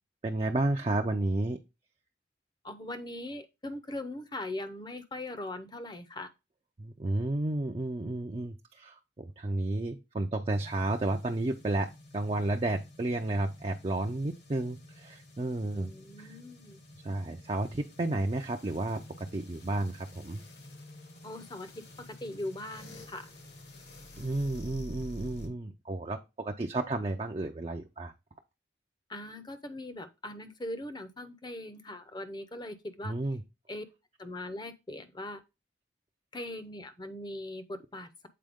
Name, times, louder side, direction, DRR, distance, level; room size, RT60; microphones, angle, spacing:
voice 1, 0.2-1.6 6.8-15.9 16.2-16.4 17.0-20.4 24.2-28.1 33.0-33.4, right 2 dB, 30° right, 0.4 m, -32 dB
voice 2, 2.6-6.3 15.7-16.8 21.2-23.3 29.1-33.1 33.7-33.8 34.2-35.4 36.3-38.3, left 1 dB, 25° left, 0.7 m, -40 dB
sound 1, 10.5-25.5, left 1 dB, 60° left, 1.4 m, -50 dB
7.6 x 4.4 x 3.5 m
head